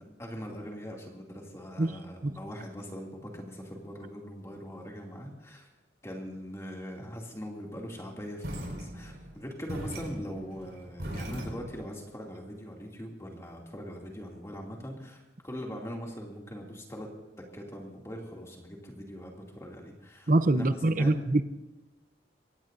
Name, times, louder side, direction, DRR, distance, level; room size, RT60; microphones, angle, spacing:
voice 1, 0.0-5.7 6.0-17.1 17.5-21.2, equal, 15° left, -1 dB, 2.6 m, -41 dB
sound 1, 8.4-11.9, equal, 65° right, 5.2 m, -39 dB
voice 2, 20.3-21.4, right 2 dB, 45° right, 11 dB, 0.7 m, -24 dB
24.0 x 17.5 x 2.7 m, 1.0 s
head